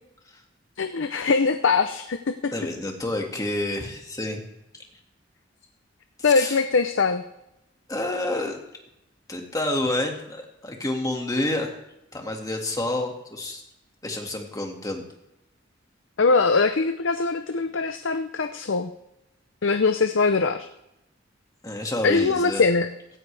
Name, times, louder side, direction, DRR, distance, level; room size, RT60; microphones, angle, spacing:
voice 1, 0.8-2.5 6.2-7.2 16.2-18.9 19.6-20.7 22.0-22.9, left 4 dB, 75° left, 8 dB, 0.7 m, -22 dB
voice 2, 2.5-4.4 6.2-6.6 7.9-8.6 9.3-11.8 12.1-13.6 14.0-15.0 21.6-22.7, left 1 dB, 20° left, 2 dB, 2.0 m, -29 dB
17.0 x 15.0 x 3.4 m, 0.88 s
head